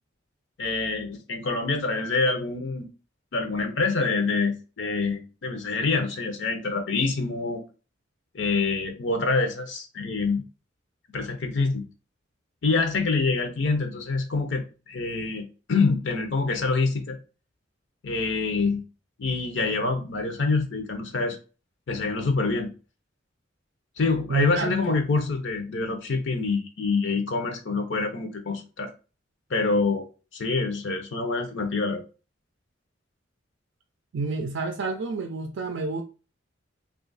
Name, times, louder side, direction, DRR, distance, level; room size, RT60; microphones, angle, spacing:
voice 1, 0.6-2.9 3.3-7.6 8.3-10.4 11.1-11.8 12.6-17.2 18.0-18.8 19.2-21.4 21.9-22.7 24.0-28.9 29.5-30.1 30.3-32.0, left 3 dB, 65° left, 0.6 m, -26 dB
voice 2, 24.3-25.0 34.1-36.0, right 2 dB, 70° right, 0.4 m, -29 dB
2.8 x 2.4 x 3.9 m
head